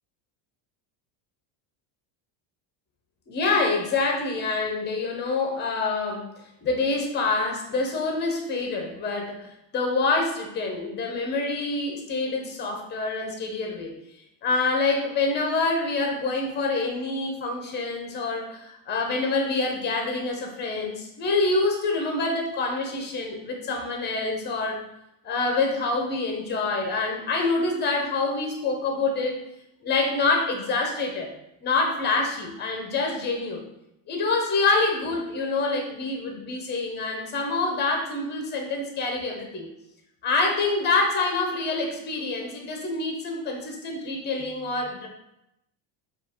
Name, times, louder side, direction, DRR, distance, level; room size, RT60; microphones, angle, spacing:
voice 1, 3.3-6.3 6.6-13.9 14.4-24.8 25.2-29.4 29.8-31.3 31.6-33.6 34.1-39.7 40.2-45.1, left 3 dB, 20° left, 1 dB, 0.5 m, -26 dB
5.0 x 2.4 x 3.5 m, 0.85 s
cardioid pair, 165°, 49 cm